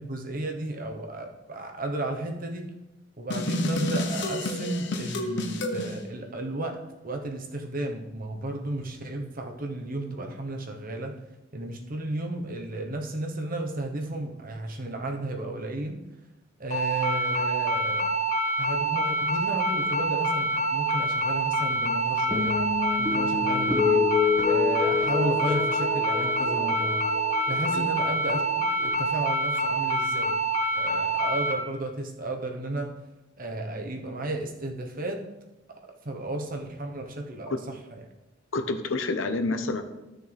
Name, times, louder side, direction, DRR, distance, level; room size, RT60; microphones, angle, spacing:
voice 1, 0.0-2.7 3.2-11.2 11.5-16.0 16.6-18.2 18.6-24.2 24.4-27.1 27.5-28.4 28.8-30.4 30.7-33.0 33.4-35.2 36.0-38.0, right 2 dB, 45° right, 3 dB, 1.1 m, -33 dB
sound 1, 3.3-5.9, left 1 dB, 65° left, 1.0 m, -29 dB
sound 2, 16.7-31.5, right 1 dB, 40° left, 2.4 m, -26 dB
sound 3, 22.3-28.9, left 6 dB, 10° right, 1.7 m, -28 dB
voice 2, 38.5-39.8, left 3 dB, 90° left, 8 dB, 0.8 m, -28 dB
13.0 x 6.4 x 3.4 m, 1.0 s
head